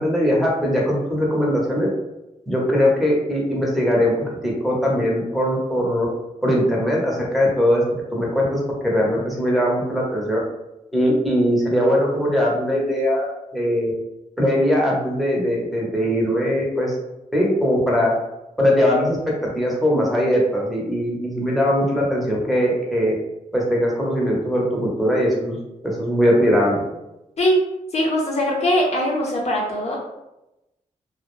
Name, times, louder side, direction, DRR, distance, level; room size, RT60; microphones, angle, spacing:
voice 1, 0.0-1.9 2.5-6.1 6.4-7.8 8.1-10.4 10.9-13.2 13.5-13.9 14.4-17.0 17.3-18.1 18.6-19.2 19.4-23.1 23.5-25.6 25.8-26.8, equal, ahead, -4 dB, 0.8 m, -20 dB
voice 2, 27.9-30.0, equal, 50° left, -2 dB, 0.6 m, -21 dB
2.2 x 2.0 x 3.0 m, 0.93 s
cardioid pair, 70°, 14 cm